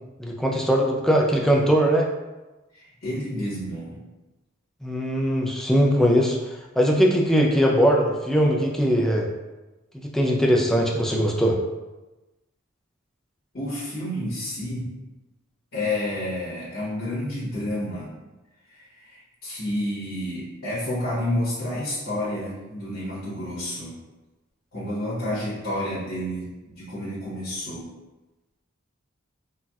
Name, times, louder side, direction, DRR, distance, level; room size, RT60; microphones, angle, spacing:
voice 1, 0.2-2.1 4.8-9.3 10.0-11.6, equal, ahead, -1 dB, 0.3 m, -20 dB
voice 2, 2.7-4.0 13.5-14.9 15.7-18.1 18.7-23.9 24.7-27.8, left 1 dB, 65° left, -9 dB, 1.0 m, -30 dB
4.0 x 2.2 x 2.3 m, 1.1 s
head